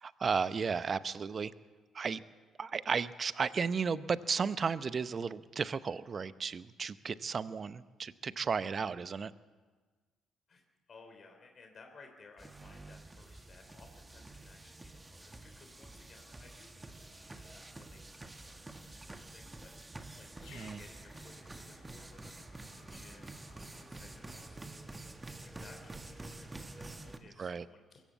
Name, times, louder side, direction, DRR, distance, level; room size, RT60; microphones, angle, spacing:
voice 1, 0.0-1.5 1.9-2.2 2.6-9.3 20.5-20.8 27.4-27.6, right 5 dB, 40° right, 16 dB, 0.8 m, -34 dB
voice 2, 10.9-24.9 25.4-28.0, left 4 dB, 45° left, 4 dB, 3.3 m, -59 dB
sound 1, 12.4-27.2, right 2 dB, 20° right, 1.8 m, -49 dB
Growling, 20.3-25.0, left 5 dB, 65° left, 4.3 m, -60 dB
23.0 x 15.0 x 8.2 m, 1.4 s
hypercardioid pair, 45°, 0 cm